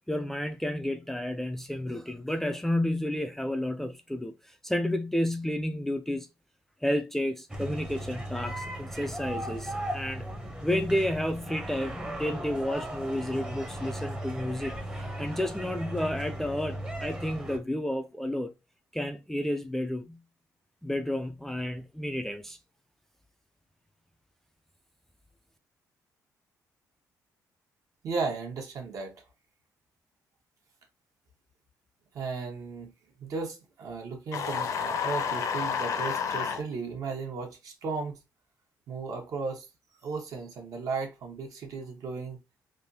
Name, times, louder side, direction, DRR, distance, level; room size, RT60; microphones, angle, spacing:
voice 1, 0.1-6.3 6.8-10.2 10.6-18.5 18.9-20.2 20.8-22.6, left 1 dB, 5° left, 0.3 m, -31 dB
sound 1, 7.5-17.6, right 1 dB, 15° right, 0.7 m, -37 dB
voice 2, 28.0-29.1 32.1-32.9 33.2-38.2 38.9-39.7 40.0-42.4, right 4 dB, 60° right, 1.1 m, -35 dB
sound 2, 34.3-36.6, left 7 dB, 60° left, 0.6 m, -30 dB
3.3 x 2.5 x 2.7 m
cardioid pair, 115°, 6 cm